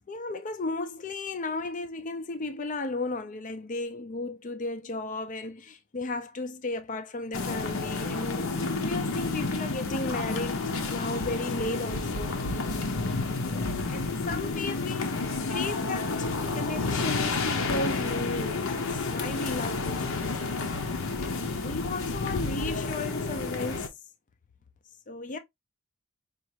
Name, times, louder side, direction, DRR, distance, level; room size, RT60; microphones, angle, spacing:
voice 1, 0.1-12.8 13.1-15.2 15.5-20.4 21.2-23.9 25.1-25.4, left 2 dB, 35° left, 0.5 m, -35 dB
sound 1, 7.3-23.9, left 3 dB, 65° left, 0.8 m, -30 dB
5.0 x 2.5 x 2.9 m
head